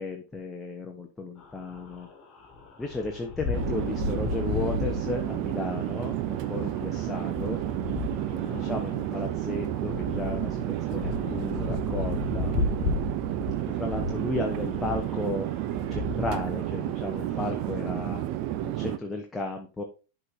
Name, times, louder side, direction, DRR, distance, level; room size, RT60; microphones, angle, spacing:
voice 1, 0.0-2.1 2.8-7.6 8.3-12.6 13.8-15.5 15.9-18.2 18.6-19.8, left 3 dB, 10° left, 2 dB, 1.0 m, -34 dB
sound 1, 1.4-17.6, left 4 dB, 30° left, 2.0 m, -35 dB
Chatter / Fixed-wing aircraft airplane, 3.5-19.0, right 14 dB, 45° right, 0.6 m, -31 dB
11.5 x 4.5 x 3.7 m, 0.33 s
figure-of-eight pair, 90°, 0 cm